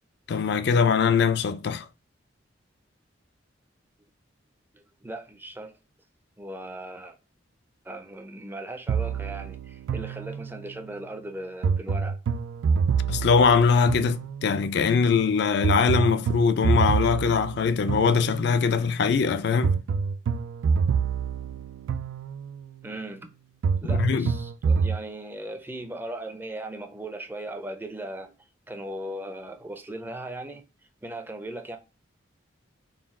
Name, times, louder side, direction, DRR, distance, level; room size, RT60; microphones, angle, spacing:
voice 1, 0.3-1.9 13.1-19.8 23.9-24.3, left 5 dB, 55° left, 0.3 m, -22 dB
voice 2, 4.7-5.7 6.4-7.2 7.8-12.2 22.8-23.3 23.8-28.3 28.7-30.6 31.0-31.8, right 1 dB, 10° right, 0.5 m, -38 dB
sound 1, 8.9-10.8 11.6-14.7 15.6-18.7 19.6-22.7 23.6-25.0, right 5 dB, 85° right, 0.3 m, -27 dB
4.0 x 2.3 x 3.5 m
head